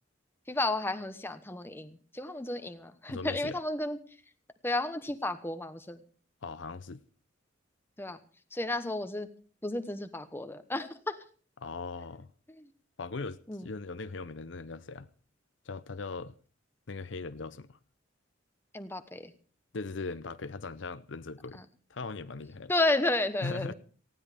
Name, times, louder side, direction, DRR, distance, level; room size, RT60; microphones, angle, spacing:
voice 1, 0.5-4.0 4.6-6.0 8.0-8.2 8.5-9.3 9.6-11.2 12.5-12.7 13.5-13.7 18.7-19.3 21.5-21.6 22.7-23.7, left 2 dB, 10° left, 1.1 m, -32 dB
voice 2, 3.1-3.6 6.4-7.0 11.6-12.3 13.0-15.1 15.7-16.3 16.9-17.8 19.7-21.6 21.9-22.7 23.4-23.7, left 3 dB, 70° left, 0.7 m, -39 dB
18.5 x 15.5 x 3.5 m
head